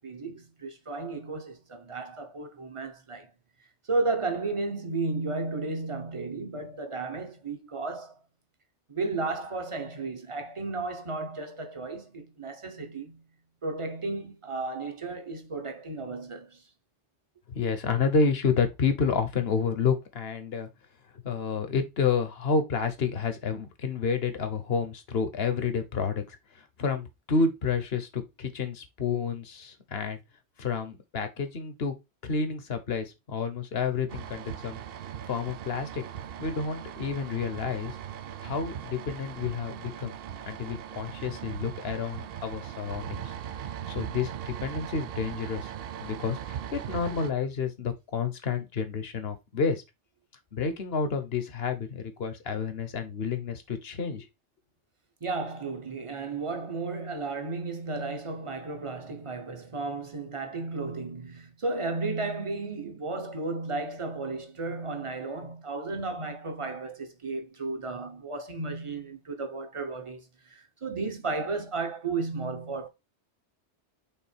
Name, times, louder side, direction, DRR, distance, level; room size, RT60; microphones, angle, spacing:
voice 1, 0.0-3.3 3.9-8.2 8.9-13.2 13.6-16.6 55.2-72.9, right 3 dB, 30° right, 0.9 m, -33 dB
voice 2, 17.5-20.7 21.2-26.4 26.8-30.2 30.6-31.9 32.2-34.8 35.3-36.0 36.4-38.0 38.4-40.1 40.4-43.3 43.9-45.7 46.0-49.8 50.5-54.3, left 5 dB, 60° left, 1.3 m, -29 dB
sound 1, 34.1-47.3, right 9 dB, 60° right, 0.7 m, -39 dB
5.6 x 3.8 x 4.4 m
omnidirectional pair, 1.2 m